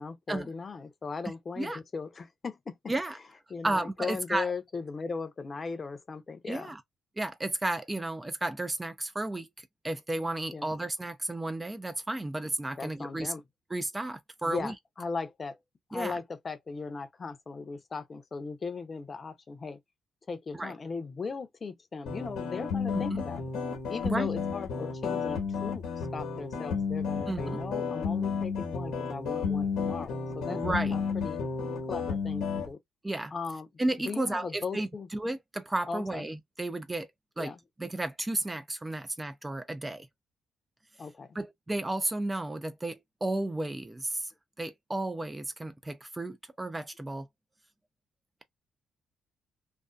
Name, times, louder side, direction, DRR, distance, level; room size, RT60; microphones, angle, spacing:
voice 1, 0.0-2.8 3.5-6.7 10.5-10.7 12.8-13.4 14.4-14.7 15.0-15.6 15.9-19.8 20.3-23.4 23.9-25.9 26.1-30.6 30.9-31.4 31.9-32.8 33.3-33.7 34.0-35.1 35.9-36.2 37.4-37.6 41.0-41.3, left 4 dB, 35° left, 0.6 m, -38 dB
voice 2, 2.9-3.2 3.6-4.5 6.5-6.8 7.2-13.3 13.7-14.7 15.9-16.2 20.5-20.7 22.9-23.2 24.0-24.3 27.3-27.6 30.5-31.0 33.0-33.3 33.8-37.1 37.4-37.5 37.8-40.1 41.3-44.3 44.6-47.3, right 2 dB, 15° right, 0.3 m, -33 dB
sound 1, 22.1-32.7, left 5 dB, 85° left, 1.0 m, -32 dB
2.5 x 2.3 x 2.2 m
cardioid pair, 90°, 0 cm